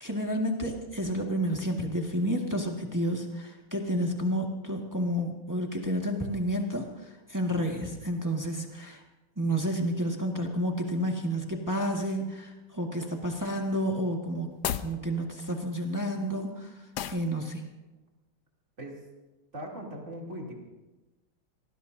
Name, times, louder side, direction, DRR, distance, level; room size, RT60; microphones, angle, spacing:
voice 1, 0.0-9.0 9.4-14.5 14.8-16.7 17.1-17.6, equal, 10° right, 0 dB, 1.5 m, -30 dB
sound 1, 14.5-15.0 16.9-17.3, left 10 dB, 70° left, 1.0 m, -32 dB
voice 2, 19.5-20.5, equal, 35° right, -2 dB, 3.3 m, -39 dB
26.0 x 19.5 x 2.7 m, 1.1 s
omnidirectional pair, 2.3 m